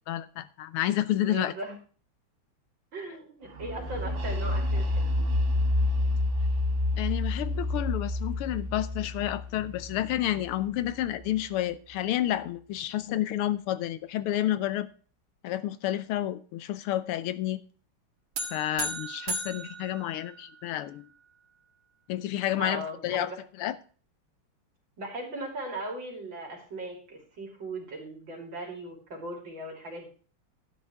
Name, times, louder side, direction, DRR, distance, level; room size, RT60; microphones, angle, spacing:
voice 1, 0.1-1.5 7.0-14.9 15.4-17.6 18.5-21.1 22.1-23.3 23.6-23.8, left 13 dB, 85° left, 14 dB, 1.6 m, -30 dB
voice 2, 1.2-1.7 2.9-5.3 22.6-23.3 25.0-30.1, right 2 dB, 60° right, 1 dB, 3.4 m, -38 dB
sound 1, 3.6-11.3, left 2 dB, 40° right, 0.8 m, -29 dB
sound 2, 18.4-20.8, right 2 dB, 90° right, 2.7 m, -36 dB
12.0 x 10.0 x 3.5 m, 0.40 s
omnidirectional pair, 2.4 m